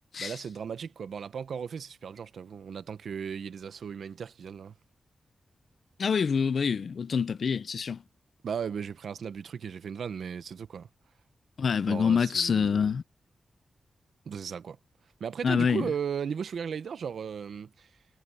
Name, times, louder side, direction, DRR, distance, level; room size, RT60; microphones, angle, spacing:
voice 1, 0.2-4.7 8.4-10.9 11.9-12.9 14.3-14.8 15.2-17.9, right 7 dB, 85° right, 1.0 m, -36 dB
voice 2, 6.0-8.0 11.6-13.0 15.4-15.9, left 6 dB, 55° left, 0.6 m, -26 dB
wide cardioid pair, 175°, 0 cm